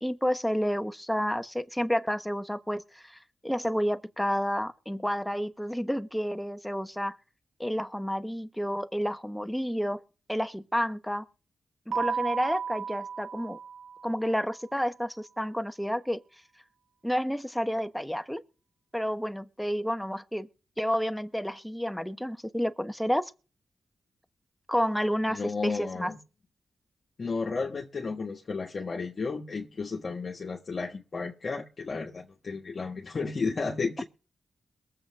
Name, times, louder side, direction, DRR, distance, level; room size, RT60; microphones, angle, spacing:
voice 1, 0.0-7.2 7.6-10.0 10.3-11.3 11.9-13.6 14.0-16.2 17.0-18.4 18.9-20.5 20.8-23.3 24.7-26.1, equal, 5° left, 1.1 m, -30 dB
Keyboard (musical), 11.9-14.5, right 6 dB, 75° right, 0.7 m, -34 dB
voice 2, 25.3-26.2 27.2-34.0, left 4 dB, 55° left, 1.5 m, -33 dB
22.0 x 7.8 x 3.7 m
cardioid pair, 55°, 0 cm